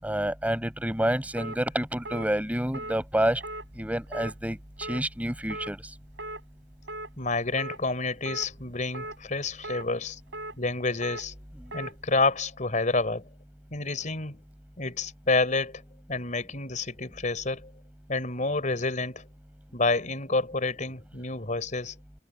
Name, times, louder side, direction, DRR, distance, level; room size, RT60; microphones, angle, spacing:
voice 1, 0.0-3.4 3.8-5.8, right 1 dB, 10° right, 5.4 m, -28 dB
sound 1, 1.4-1.6 2.1-2.3 2.7-3.0 3.4-3.6 4.1-4.3 4.8-5.0 5.5-5.7 6.2-6.4 6.9-7.1 7.6-7.8 8.3-8.5 8.9-9.2 9.6-9.9 10.3-10.5 11.0-11.2 11.7-11.9, right 2 dB, 90° right, 4.3 m, -37 dB
voice 2, 7.2-10.2 10.6-11.3 11.7-13.3 13.7-14.4 14.8-15.8 16.1-17.7 18.1-19.3 19.7-21.9, left 3 dB, 45° left, 4.4 m, -29 dB
head